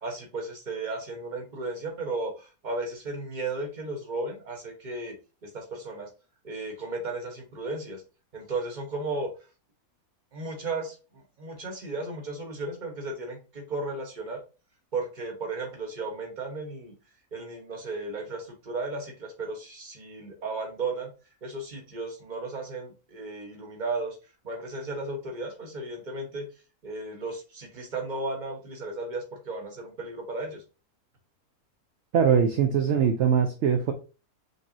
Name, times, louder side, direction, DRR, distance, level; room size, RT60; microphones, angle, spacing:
voice 1, 0.0-5.1 5.4-6.1 6.4-8.0 8.3-9.3 10.3-11.0 11.4-14.4 14.9-16.9 17.3-21.1 21.4-24.2 24.4-26.5 26.8-30.6, right 3 dB, 35° right, 2 dB, 1.2 m, -34 dB
voice 2, 32.1-33.9, right 7 dB, 60° right, 5 dB, 0.8 m, -22 dB
5.1 x 3.3 x 2.8 m, 0.32 s
omnidirectional pair, 1.5 m